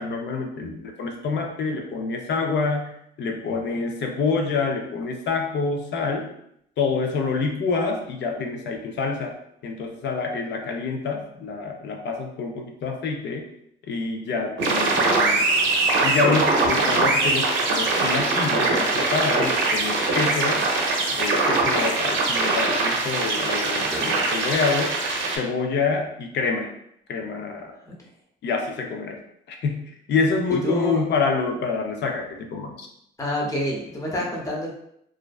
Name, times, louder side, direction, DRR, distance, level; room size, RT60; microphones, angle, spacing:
voice 1, 0.0-6.3 6.8-9.4 9.6-13.5 13.9-15.5 16.0-20.7 21.1-25.0 25.4-26.7 27.1-27.7 28.4-29.2 29.5-32.9, left 4 dB, 60° left, 2 dB, 0.5 m, -27 dB
sound 1, 14.6-25.4, right 3 dB, 70° right, 0.5 m, -22 dB
voice 2, 23.7-24.1 27.8-28.0 30.5-31.0 33.2-34.7, equal, 15° left, -2 dB, 0.7 m, -28 dB
2.5 x 2.1 x 2.3 m, 0.73 s
cardioid pair, 90°, 20 cm